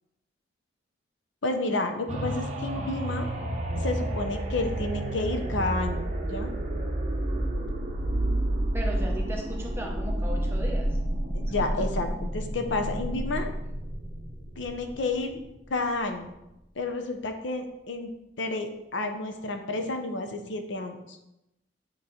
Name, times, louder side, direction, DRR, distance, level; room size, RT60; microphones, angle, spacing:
voice 1, 1.4-3.3 3.8-6.5 11.3-13.5 14.6-15.4 15.7-16.3 16.8-18.1 18.4-21.2, left 2 dB, 70° left, 5 dB, 0.7 m, -30 dB
sound 1, 2.1-15.7 16.2-16.3, right 1 dB, 35° right, 0.9 m, -30 dB
voice 2, 8.7-10.9, equal, 15° right, -1 dB, 1.0 m, -36 dB
8.7 x 3.1 x 4.1 m, 0.90 s
head